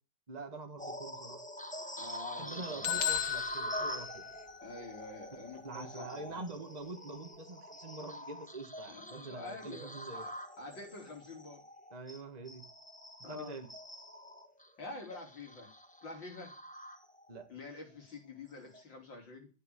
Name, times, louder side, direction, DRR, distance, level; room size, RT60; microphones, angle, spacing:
voice 1, 0.3-1.4 2.3-4.3 5.6-10.2 11.9-12.7 13.2-13.7 17.3-17.5, right 3 dB, 25° right, 5 dB, 1.6 m, -45 dB
sound 1, 0.8-17.4 17.9-18.1 18.6-18.8, equal, 5° left, 1.6 m, -45 dB
voice 2, 2.0-3.0 4.6-6.5 8.9-11.6 13.2-13.6 14.8-15.7 16.0-16.5 17.5-19.5, left 3 dB, 75° left, 2 dB, 5.1 m, -47 dB
sound 2, 2.8-4.8, left 9 dB, 50° left, 1.2 m, -35 dB
15.0 x 8.1 x 8.3 m, 0.35 s
omnidirectional pair, 2.0 m